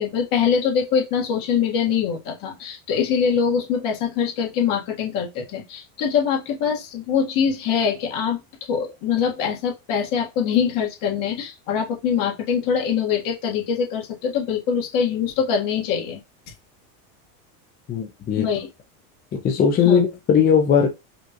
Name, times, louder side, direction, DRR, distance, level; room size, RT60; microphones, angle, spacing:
voice 1, 0.0-8.4 8.7-16.2 18.4-18.7 19.8-20.0, left 7 dB, 50° left, 1.6 m, -23 dB
voice 2, 17.9-18.5 19.3-20.9, left 7 dB, 20° left, 0.6 m, -18 dB
5.1 x 2.4 x 2.9 m
supercardioid pair, 135°, 44 cm